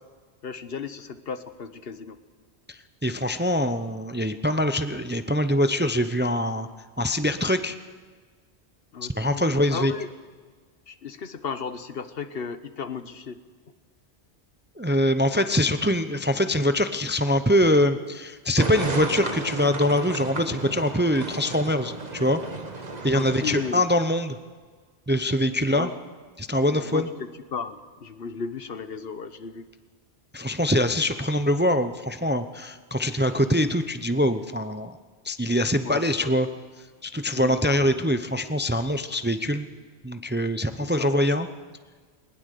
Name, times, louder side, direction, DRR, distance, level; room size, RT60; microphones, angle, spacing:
voice 1, 0.4-2.2 8.9-9.5 9.7-10.1 10.9-13.4 23.1-23.9 25.7-25.9 26.6-29.7 35.8-36.3 37.4-37.9 40.8-41.2, left 6 dB, 65° left, 11 dB, 1.2 m, -35 dB
voice 2, 2.7-6.7 7.0-7.8 9.1-9.9 14.8-22.4 23.0-24.4 25.1-25.9 26.4-27.1 30.3-35.0 35.2-36.5 37.0-39.7 40.0-41.5, equal, 10° right, 9 dB, 0.6 m, -23 dB
sound 1, 18.6-23.7, right 3 dB, 40° right, 1.5 m, -33 dB
20.0 x 20.0 x 6.7 m, 1.5 s
omnidirectional pair, 1.1 m